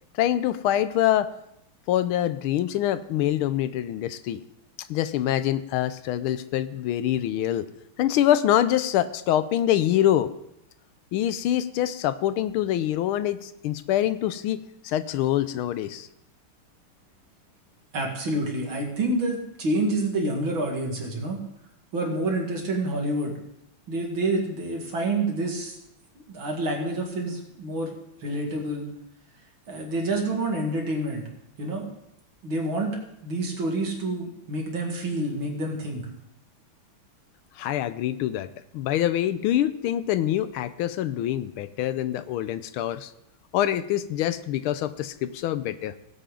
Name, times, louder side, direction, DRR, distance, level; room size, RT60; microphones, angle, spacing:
voice 1, 0.2-1.3 1.9-4.4 4.9-7.7 8.0-10.3 11.1-16.1 37.6-43.1 43.5-45.9, left 12 dB, 80° left, 14 dB, 1.4 m, -25 dB
voice 2, 17.9-21.4 21.9-23.3 23.9-25.8 26.2-27.9 28.2-28.9 29.7-31.2 31.6-31.9 32.4-36.0, right 2 dB, 65° right, 0 dB, 3.0 m, -28 dB
18.5 x 8.3 x 3.9 m, 0.80 s
omnidirectional pair, 2.4 m